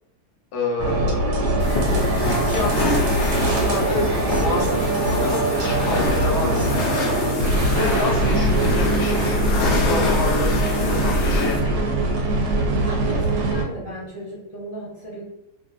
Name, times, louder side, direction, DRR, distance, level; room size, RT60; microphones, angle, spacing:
voice 1, 0.5-1.5 2.4-3.1 3.4-11.8, left 3 dB, 90° left, -1 dB, 1.3 m, -29 dB
sound 1, 0.8-13.6, right 2 dB, 90° right, 1.2 m, -22 dB
sound 2, 1.6-11.6, left 3 dB, 65° left, 0.7 m, -26 dB
voice 2, 12.6-15.2, equal, 40° right, -8 dB, 0.5 m, -36 dB
2.8 x 2.6 x 2.4 m, 0.91 s
omnidirectional pair, 1.7 m